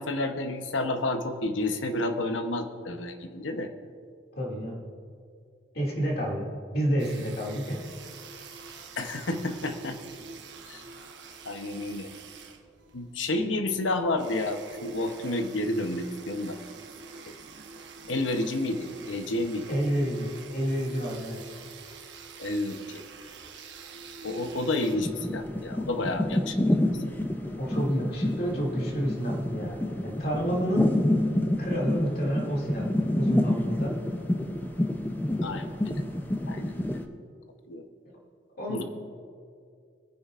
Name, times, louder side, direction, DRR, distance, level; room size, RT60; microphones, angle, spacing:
voice 1, 0.0-3.7 9.0-10.0 10.7-10.8 11.4-12.1 12.9-16.6 18.1-19.7 22.4-23.0 24.2-27.0 35.4-36.0 36.5-37.0 37.7-37.9 38.7-38.8, left 2 dB, 90° left, 7 dB, 0.9 m, -30 dB
voice 2, 4.3-4.8 5.7-7.8 19.7-21.4 27.6-30.9 31.6-33.9 38.6-38.8, equal, 55° left, -3 dB, 2.4 m, -30 dB
sound 1, 7.0-25.0, right 4 dB, 70° right, 1.1 m, -46 dB
sound 2, 24.9-37.0, left 1 dB, 10° left, 0.5 m, -28 dB
21.0 x 9.8 x 2.5 m, 2.3 s
head